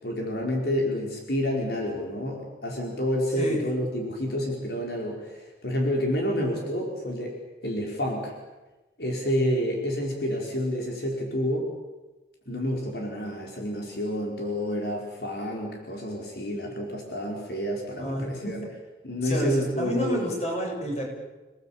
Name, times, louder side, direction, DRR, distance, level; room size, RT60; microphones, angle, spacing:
voice 1, 0.0-8.3 9.0-11.7 12.5-18.6 19.0-20.3, equal, 75° left, 0 dB, 5.1 m, -29 dB
voice 2, 18.0-18.7 19.2-21.1, equal, 40° left, 0 dB, 7.4 m, -30 dB
29.5 x 19.0 x 8.6 m, 1.1 s
head